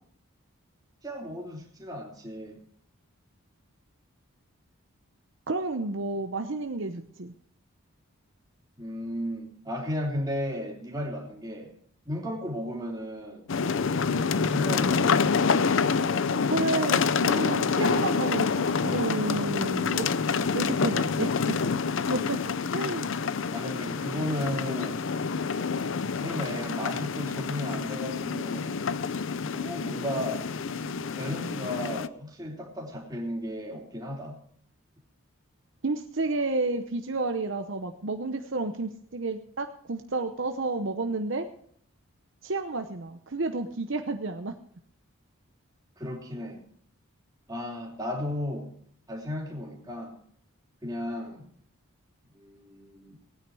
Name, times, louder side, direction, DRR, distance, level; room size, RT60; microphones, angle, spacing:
voice 1, 1.0-2.6 8.8-11.7 12.0-13.5 14.5-15.3 23.5-25.0 26.2-28.8 29.5-30.5 31.2-34.4 46.0-46.6 47.5-48.7 49.1-50.1 50.8-51.5 52.3-53.2, left 1 dB, 15° right, -1 dB, 2.9 m, -34 dB
voice 2, 5.5-7.3 16.5-20.1 20.5-21.6 22.1-22.4 22.7-23.1 35.8-41.5 42.4-44.5, right 3 dB, 60° right, 6 dB, 0.8 m, -31 dB
sound 1, 13.5-32.1, left 5 dB, 60° left, 0.5 m, -27 dB
18.0 x 9.5 x 4.7 m, 0.63 s
head